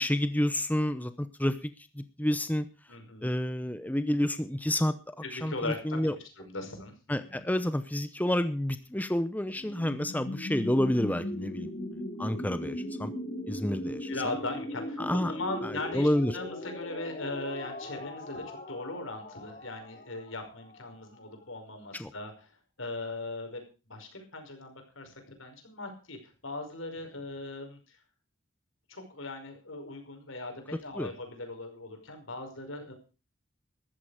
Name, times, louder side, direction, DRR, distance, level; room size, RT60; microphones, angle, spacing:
voice 1, 0.0-1.7 2.0-2.7 3.2-4.9 5.3-6.1 7.1-11.7 12.2-13.1 13.5-14.1 15.0-15.3 15.9-16.3 22.0-22.1 31.0-31.1, left 1 dB, 10° left, 11 dB, 0.7 m, -29 dB
voice 2, 2.9-3.3 5.2-6.1 6.4-7.5 12.4-12.6 14.1-25.1 25.4-26.2 26.4-28.0 28.9-32.9, left 2 dB, 85° left, 5 dB, 5.4 m, -39 dB
sound 1, 9.5-21.3, left 1 dB, 40° left, 2.8 m, -39 dB
14.0 x 13.5 x 4.9 m, 0.34 s
head